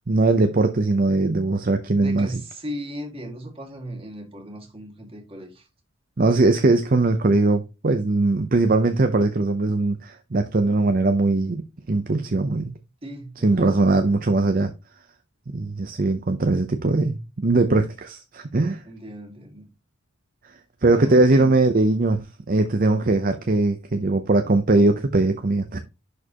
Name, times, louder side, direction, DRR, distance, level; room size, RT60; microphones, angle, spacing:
voice 1, 0.1-2.4 6.2-12.7 13.4-14.7 15.5-18.8 20.8-25.8, right 2 dB, 45° right, 0.6 m, -20 dB
voice 2, 2.0-5.6 13.0-14.2 18.9-19.7 20.9-21.6, equal, 30° right, 2.0 m, -37 dB
11.0 x 4.5 x 2.9 m
head